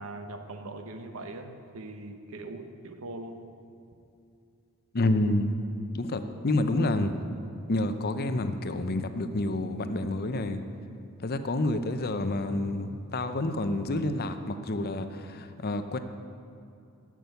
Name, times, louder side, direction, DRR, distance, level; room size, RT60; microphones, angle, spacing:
voice 1, 0.0-3.4, right 2 dB, 65° right, 6 dB, 1.0 m, -41 dB
voice 2, 4.9-5.5 5.9-7.1 7.7-10.6 11.2-16.0, left 2 dB, 45° left, 9 dB, 0.7 m, -28 dB
13.5 x 6.2 x 9.3 m, 2.6 s
head